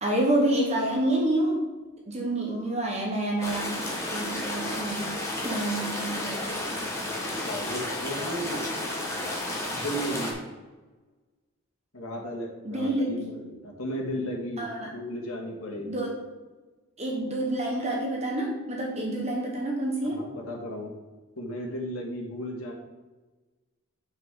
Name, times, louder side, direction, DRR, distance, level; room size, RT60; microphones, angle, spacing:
voice 1, 0.0-1.7 2.0-6.8 12.6-13.4 14.6-14.9 15.8-16.2 17.0-20.2, right 1 dB, 30° right, -1 dB, 1.0 m, -28 dB
sound 1, 3.4-10.3, left 1 dB, 10° left, 1.2 m, -32 dB
voice 2, 7.0-8.6 9.7-10.3 11.9-16.1 20.1-20.9 21.4-22.7, equal, 80° left, -1 dB, 1.8 m, -35 dB
7.6 x 5.9 x 3.7 m, 1.2 s
head